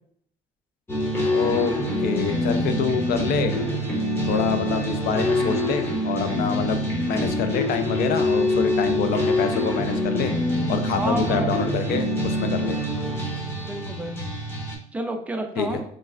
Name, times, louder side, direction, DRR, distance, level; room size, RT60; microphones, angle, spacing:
sound 1, 0.9-14.8, left 1 dB, 15° left, 0.7 m, -25 dB
voice 1, 1.2-1.7 2.0-3.6 4.3-10.3 10.7-12.8 15.6-15.7, left 6 dB, 65° left, 8 dB, 0.4 m, -26 dB
voice 2, 10.9-11.5 13.6-14.3 14.9-15.8, right 2 dB, 10° right, 4 dB, 0.4 m, -29 dB
3.1 x 2.3 x 2.4 m, 0.66 s
cardioid pair, 110°, 17 cm